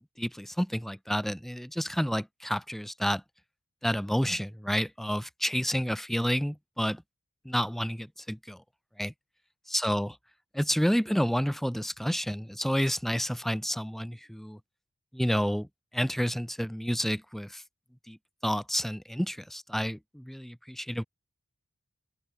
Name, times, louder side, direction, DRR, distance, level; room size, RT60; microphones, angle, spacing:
voice 1, 0.2-3.2 3.8-7.0 7.4-8.6 9.0-9.1 9.7-10.1 10.5-14.6 15.1-15.7 15.9-17.6 18.1-18.2 18.4-21.0, equal, ahead, 0.8 m, -30 dB
open air
head